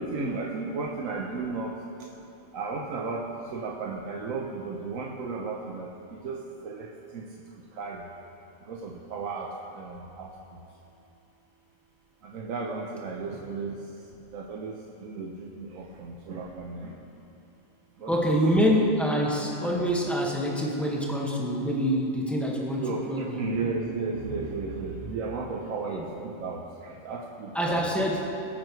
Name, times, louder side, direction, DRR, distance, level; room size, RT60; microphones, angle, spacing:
voice 1, 0.0-1.7 2.5-3.2 3.5-5.9 6.2-6.9 7.1-7.3 7.8-8.0 8.7-9.5 9.8-10.3 12.3-13.7 14.3-14.8 15.0-16.9 18.0-18.1 22.7-26.6 27.0-27.9, right 4 dB, 85° right, -1 dB, 1.3 m, -34 dB
voice 2, 18.1-23.9 25.9-26.0 27.5-28.3, equal, ahead, -3 dB, 1.6 m, -26 dB
22.0 x 9.2 x 3.2 m, 2.7 s
omnidirectional pair, 1.4 m